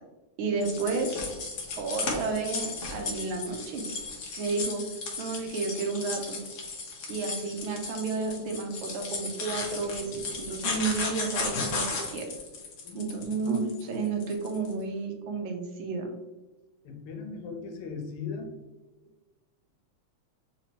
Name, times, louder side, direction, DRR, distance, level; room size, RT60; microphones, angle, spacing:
voice 1, 0.4-1.2 1.8-3.9 4.4-4.9 5.2-6.4 7.1-12.3 12.9-16.2, right 4 dB, 80° right, 3 dB, 1.4 m, -31 dB
sound 1, 0.6-14.7, left 4 dB, 60° left, 1.1 m, -35 dB
voice 2, 16.8-18.5, left 5 dB, 90° left, 2 dB, 1.7 m, -38 dB
4.0 x 3.0 x 2.8 m, 1.1 s
omnidirectional pair, 2.4 m